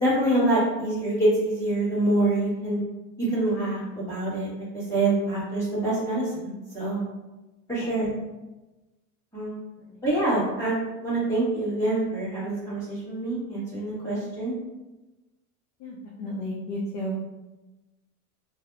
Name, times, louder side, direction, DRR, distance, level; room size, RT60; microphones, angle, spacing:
voice 1, 0.0-2.8 3.2-7.0 7.7-8.1 9.3-9.6 10.0-14.6, right 1 dB, 5° left, -11 dB, 1.4 m, -26 dB
voice 2, 15.8-17.1, equal, 40° left, -3 dB, 0.4 m, -33 dB
2.7 x 2.0 x 2.4 m, 1.1 s
supercardioid pair, 120°, 46 cm